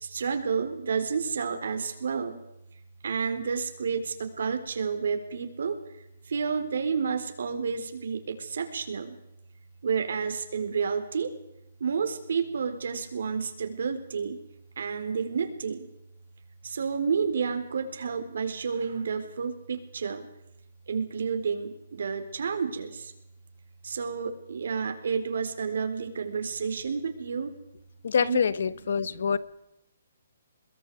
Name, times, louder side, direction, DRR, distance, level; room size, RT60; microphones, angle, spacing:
voice 1, 0.0-2.4 3.0-5.8 6.3-9.1 9.8-11.3 11.8-14.4 14.8-15.9 16.6-20.2 20.9-23.1 23.8-27.5 28.2-28.4 29.0-29.4, right 6 dB, 70° right, 8 dB, 4.1 m, -30 dB
voice 2, 28.0-29.4, left 6 dB, 65° left, 17 dB, 1.2 m, -25 dB
26.0 x 22.0 x 4.9 m, 0.85 s
hypercardioid pair, 170°, 0 cm